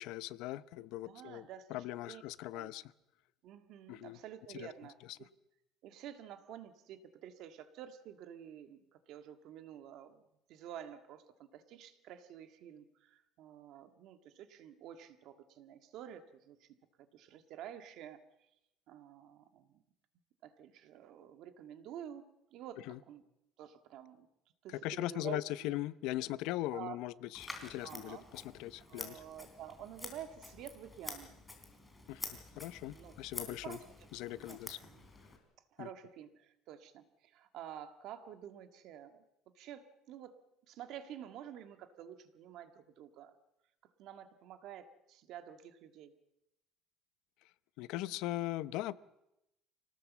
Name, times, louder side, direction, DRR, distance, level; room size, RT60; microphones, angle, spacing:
voice 1, 0.0-1.4 1.7-2.9 3.9-4.2 4.5-4.7 5.1-5.2 22.9-23.0 24.8-29.2 32.1-33.8 34.1-34.8 35.8-35.9 47.8-49.0, left 15 dB, 70° left, 16 dB, 0.7 m, -40 dB
voice 2, 1.0-2.2 2.5-2.7 3.4-5.3 5.8-10.2 10.5-16.7 17.0-18.2 18.9-19.8 20.4-22.2 22.5-23.2 23.6-24.3 24.6-25.8 26.7-27.0 27.8-28.3 28.9-31.3 32.9-33.2 33.4-33.8 34.3-35.1 35.7-39.2 39.6-40.4 40.7-43.4 44.0-46.2, right 10 dB, 55° right, 8 dB, 1.8 m, -50 dB
Scissors, 27.3-35.4, left 2 dB, 10° left, 3.2 m, -48 dB
25.0 x 18.5 x 7.4 m, 0.88 s
cardioid pair, 170°, 0 cm